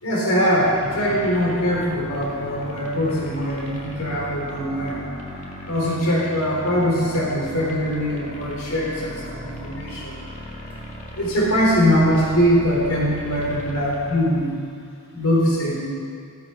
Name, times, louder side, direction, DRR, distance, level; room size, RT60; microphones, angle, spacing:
voice 1, 0.0-5.0 5.7-10.3 11.2-14.6 15.1-15.8, equal, 75° left, -3 dB, 3.9 m, -22 dB
sound 1, 0.6-14.2, equal, 35° left, 2.1 m, -37 dB
16.0 x 14.5 x 5.7 m, 2.2 s
head